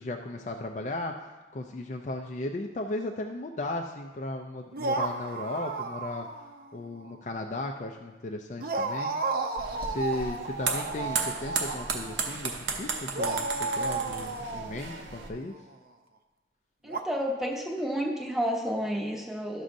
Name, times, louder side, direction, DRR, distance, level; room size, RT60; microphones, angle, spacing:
voice 1, 0.0-6.3 6.7-9.2 9.8-15.5, left 2 dB, 40° left, 3 dB, 0.4 m, -36 dB
sound 1, 4.7-6.6 7.0-7.1 8.6-12.5 13.1-15.6 16.9-17.0, right 3 dB, 50° right, 0.6 m, -33 dB
sound 2, 9.6-15.3, right 5 dB, 85° right, 0.8 m, -34 dB
voice 2, 16.8-19.6, equal, ahead, -2 dB, 0.9 m, -30 dB
12.5 x 6.3 x 2.6 m, 1.2 s
head